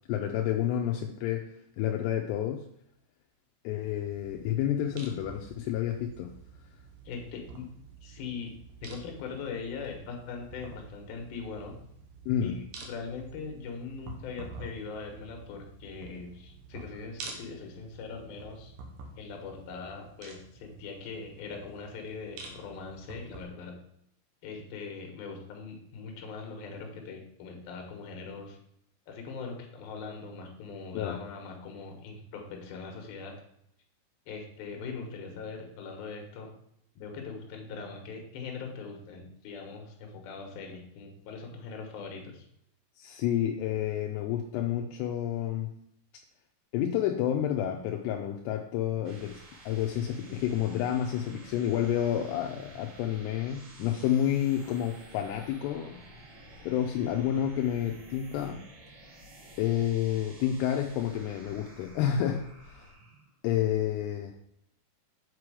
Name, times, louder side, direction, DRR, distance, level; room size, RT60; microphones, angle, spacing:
voice 1, 0.1-2.7 3.6-6.3 12.3-12.6 31.0-31.2 43.0-45.7 46.7-56.0 56.6-58.6 59.6-62.9 63.4-64.3, left 10 dB, 85° left, 3 dB, 2.7 m, -30 dB
sound 1, 3.9-23.4, right 4 dB, 70° right, 2.4 m, -49 dB
voice 2, 7.0-7.7 8.0-8.5 8.8-11.8 12.4-18.7 19.2-23.7 24.4-28.6 29.1-33.3 34.3-36.5 37.0-42.5, left 5 dB, 70° left, 2 dB, 2.9 m, -41 dB
sound 2, 48.8-63.3, right 1 dB, 85° right, 4.3 m, -51 dB
7.6 x 4.8 x 4.8 m, 0.73 s
omnidirectional pair, 4.8 m